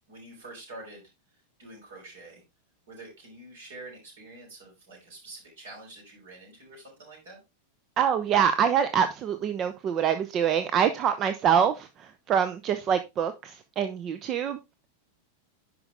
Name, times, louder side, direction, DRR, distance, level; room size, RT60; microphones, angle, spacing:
voice 1, 0.1-1.1 1.6-2.4 2.9-7.4, right 2 dB, 60° right, 0 dB, 5.8 m, -46 dB
voice 2, 8.0-14.6, right 8 dB, 30° right, 11 dB, 0.7 m, -25 dB
10.5 x 5.3 x 3.4 m, 0.23 s
figure-of-eight pair, 90°, 0 cm